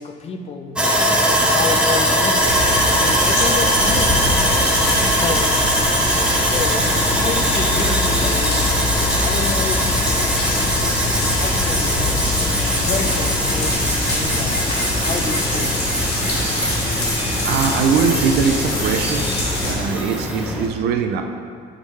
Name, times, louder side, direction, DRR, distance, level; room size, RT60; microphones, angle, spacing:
voice 1, 0.0-2.6 3.0-4.3 5.1-5.5 6.5-8.8 9.2-11.1 11.4-15.8, left 4 dB, 35° left, 5 dB, 0.5 m, -30 dB
Sawing, 0.8-20.7, equal, 5° right, 0.7 m, -21 dB
sound 1, 2.4-19.7, left 2 dB, 75° left, 1.5 m, -24 dB
voice 2, 17.4-19.3 19.6-21.2, right 6 dB, 75° right, 5 dB, 0.5 m, -21 dB
4.7 x 3.7 x 5.5 m, 2.2 s
cardioid pair, 110°, 17 cm